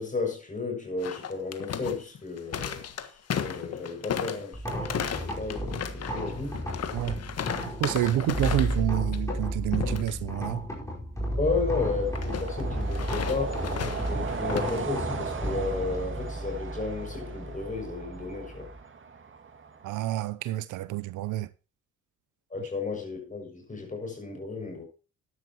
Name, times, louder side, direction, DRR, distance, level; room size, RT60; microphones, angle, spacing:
voice 1, 0.0-6.7 11.4-13.7 14.1-18.7 22.5-24.8, left 4 dB, 25° left, 6.5 m, -33 dB
sound 1, 1.0-8.9 9.1-9.4 9.7-10.1 12.1-14.8, left 8 dB, 55° left, 1.4 m, -35 dB
sound 2, 4.5-18.8, right 1 dB, 10° left, 4.6 m, -33 dB
voice 2, 7.8-10.7 19.8-21.5, right 14 dB, 85° right, 0.7 m, -28 dB
sound 3, 11.4-20.0, right 5 dB, 40° right, 2.3 m, -38 dB
13.5 x 11.0 x 3.0 m
cardioid pair, 90°, 30 cm